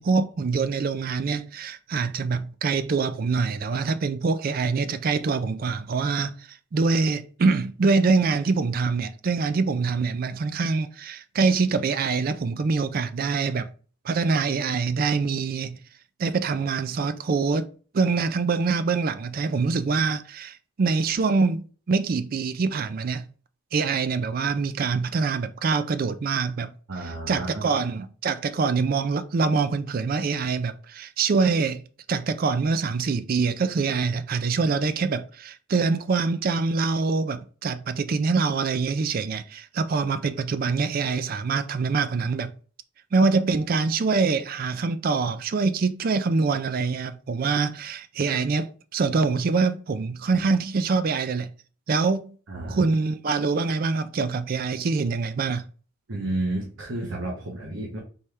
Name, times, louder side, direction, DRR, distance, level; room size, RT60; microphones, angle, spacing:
voice 1, 0.0-13.7 14.0-15.8 16.2-23.3 23.7-26.7 27.3-31.8 32.1-42.5 43.1-51.5 51.9-52.3 52.7-55.7, right 4 dB, 45° right, 0.4 m, -25 dB
voice 2, 26.9-27.7 52.5-52.9 56.1-58.0, right 2 dB, 75° right, 1.1 m, -31 dB
4.3 x 3.2 x 3.4 m
head